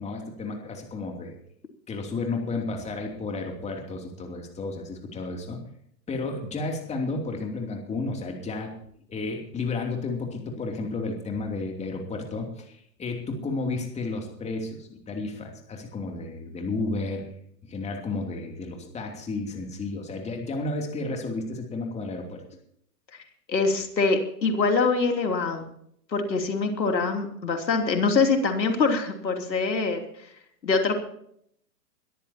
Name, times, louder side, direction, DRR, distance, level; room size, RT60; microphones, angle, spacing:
voice 1, 0.0-1.3 1.9-5.6 6.1-8.7 9.1-17.2 17.6-22.4, left 3 dB, 15° left, 2 dB, 2.9 m, -32 dB
voice 2, 23.5-25.6 26.1-30.0 30.6-31.0, left 4 dB, 90° left, 4 dB, 3.3 m, -24 dB
22.0 x 14.0 x 2.9 m, 0.68 s
hypercardioid pair, 130°, 50 cm